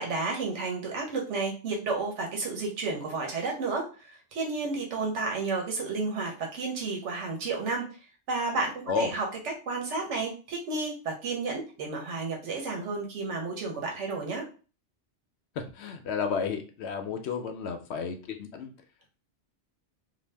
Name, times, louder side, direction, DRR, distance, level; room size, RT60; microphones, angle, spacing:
voice 1, 0.0-7.8 8.3-14.4, right 3 dB, 85° right, 0 dB, 1.1 m, -32 dB
voice 2, 15.6-18.7, left 5 dB, 70° left, 6 dB, 0.8 m, -32 dB
2.6 x 2.2 x 3.2 m, 0.35 s
omnidirectional pair, 1.2 m